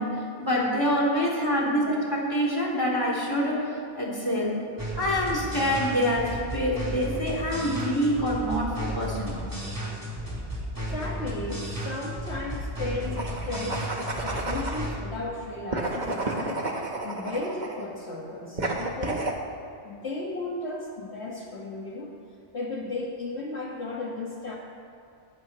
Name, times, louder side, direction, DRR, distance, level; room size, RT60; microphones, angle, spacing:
voice 1, 0.0-4.6 4.9-9.5, equal, 20° left, -4 dB, 3.3 m, -26 dB
sound 1, 4.8-14.9, equal, 15° right, 4.0 m, -34 dB
voice 2, 10.9-19.3 19.8-22.1 22.5-24.6, left 2 dB, 65° left, -3 dB, 1.9 m, -35 dB
sound 2, 13.1-14.9 15.7-17.9 18.6-19.4, right 2 dB, 40° right, 1.4 m, -31 dB
20.5 x 20.0 x 3.1 m, 2.4 s
omnidirectional pair, 1.2 m